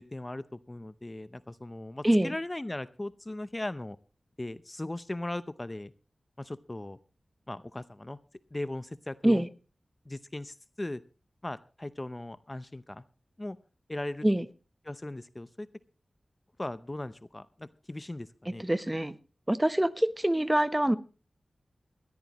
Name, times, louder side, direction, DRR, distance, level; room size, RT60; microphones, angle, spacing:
voice 1, 0.0-4.0 4.4-5.9 6.4-7.0 7.5-8.2 8.5-9.4 10.1-11.0 11.4-13.0 13.4-13.6 13.9-14.3 14.8-15.7 16.6-18.6, left 1 dB, 25° left, 0.7 m, -38 dB
voice 2, 2.0-2.3 9.2-9.5 14.2-14.4 18.6-19.1 19.5-21.0, right 1 dB, 15° right, 0.8 m, -25 dB
21.0 x 13.5 x 3.0 m
wide cardioid pair, 60°, 0 cm